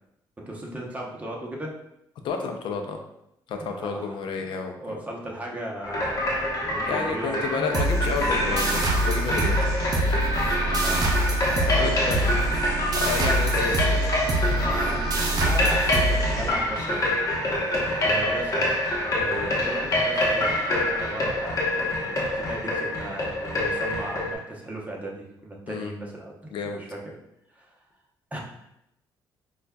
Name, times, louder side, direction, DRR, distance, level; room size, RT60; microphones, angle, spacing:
voice 1, 0.4-1.7 3.6-4.4 4.8-7.7 10.6-12.3 14.5-17.3 18.0-18.7 19.1-20.5 20.8-27.2 27.6-27.7 28.3-28.4, right 1 dB, 15° right, -2 dB, 0.9 m, -36 dB
voice 2, 2.2-3.0 3.5-5.0 6.8-9.8 11.7-12.2 12.9-14.7 15.6-15.7 25.7-25.9 26.5-26.8 28.3-28.4, left 5 dB, 70° left, 4 dB, 0.5 m, -31 dB
sound 1, 5.8-24.3, left 1 dB, 40° left, 1.0 m, -26 dB
sound 2, 7.7-17.0, right 1 dB, 45° right, 0.6 m, -25 dB
5.0 x 2.4 x 2.2 m, 0.81 s
cardioid pair, 95°, 9 cm